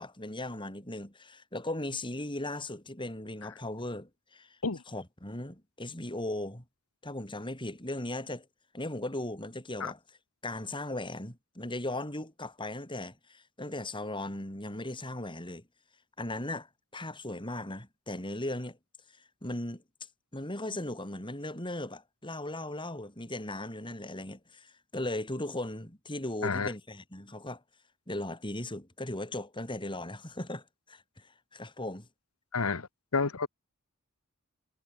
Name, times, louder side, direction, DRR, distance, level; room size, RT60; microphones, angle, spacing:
voice 1, 0.0-4.6 4.9-6.6 7.0-8.5 8.7-10.2 10.4-15.7 16.2-16.7 16.9-18.8 19.4-19.8 20.3-27.6 28.1-32.1, left 1 dB, 25° left, 6.3 m, -37 dB
voice 2, 32.5-32.9 33.1-33.5, left 4 dB, 80° left, 1.2 m, -29 dB
head